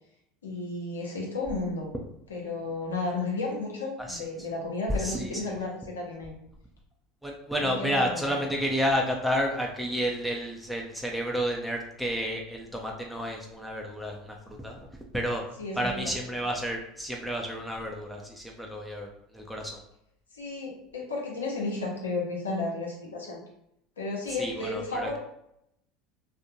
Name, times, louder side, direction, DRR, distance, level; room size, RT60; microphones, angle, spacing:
voice 1, 0.4-1.9 2.3-6.3 7.6-8.3 15.6-15.9 20.3-23.4 24.0-25.2, left 3 dB, 90° left, -2 dB, 0.8 m, -33 dB
voice 2, 5.0-5.3 7.2-14.8 15.1-15.4 15.8-19.1 19.3-19.7 24.4-25.2, equal, ahead, 0 dB, 0.4 m, -30 dB
2.6 x 2.1 x 2.6 m, 0.78 s
hypercardioid pair, 80°, 0 cm